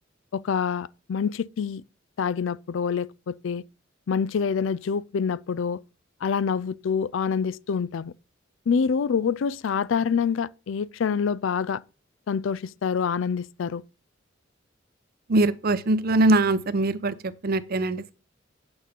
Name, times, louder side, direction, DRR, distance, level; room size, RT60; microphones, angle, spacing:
voice 1, 0.3-1.8 2.2-3.6 4.1-5.8 6.2-8.1 8.7-11.8 12.3-13.8, left 6 dB, 70° left, 0.4 m, -26 dB
voice 2, 15.3-18.1, right 2 dB, 50° right, 0.7 m, -22 dB
8.8 x 5.8 x 5.2 m
head